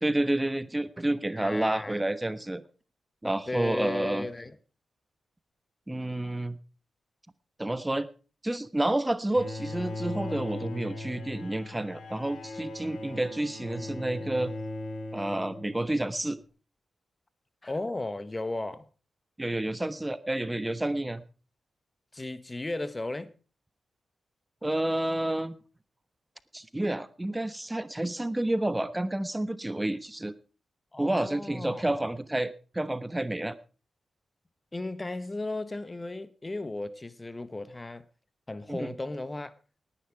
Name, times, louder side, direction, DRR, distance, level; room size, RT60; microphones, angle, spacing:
voice 1, 0.0-2.6 3.2-4.3 5.9-6.6 7.6-8.1 8.4-14.5 15.1-16.4 19.4-21.2 24.6-25.5 26.5-30.3 31.0-33.5 38.7-38.9, right 1 dB, 15° right, 1.2 m, -29 dB
voice 2, 1.4-2.0 3.5-4.5 17.6-18.9 22.1-23.3 30.9-32.1 34.7-38.0 38.5-39.5, left 2 dB, 25° left, 1.3 m, -35 dB
Bowed string instrument, 9.3-16.1, left 2 dB, 75° left, 3.4 m, -38 dB
18.5 x 10.5 x 4.8 m
supercardioid pair, 50°, 0 cm